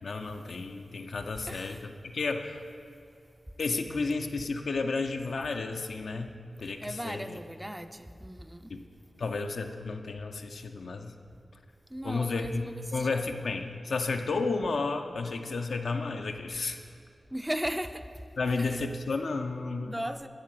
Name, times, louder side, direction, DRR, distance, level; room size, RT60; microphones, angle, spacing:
voice 1, 0.0-2.6 3.6-6.3 6.6-7.4 8.7-8.8 9.2-11.1 12.0-16.8 18.4-20.0, left 3 dB, 80° left, 0.5 m, -32 dB
voice 2, 1.5-1.9 6.6-8.8 11.9-13.2 17.3-18.2 18.6-18.8 19.8-20.3, equal, 10° right, 0.4 m, -37 dB
10.0 x 3.8 x 7.5 m
cardioid pair, 40°, 0 cm